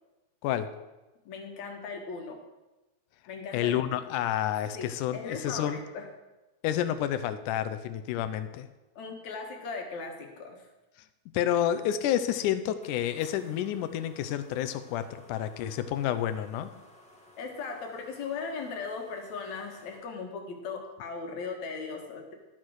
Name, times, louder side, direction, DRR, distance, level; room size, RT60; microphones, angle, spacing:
voice 1, 1.3-2.4 3.3-4.0 4.7-4.9 5.1-6.1 9.0-10.7 17.4-22.3, left 4 dB, 70° left, 3 dB, 2.7 m, -38 dB
voice 2, 3.5-5.8 6.6-8.7 11.3-15.0 15.3-16.7, left 11 dB, 85° left, 10 dB, 2.2 m, -29 dB
sound 1, 12.2-20.0, left 1 dB, 5° left, 0.5 m, -56 dB
12.0 x 6.4 x 6.3 m, 1.1 s
omnidirectional pair, 3.5 m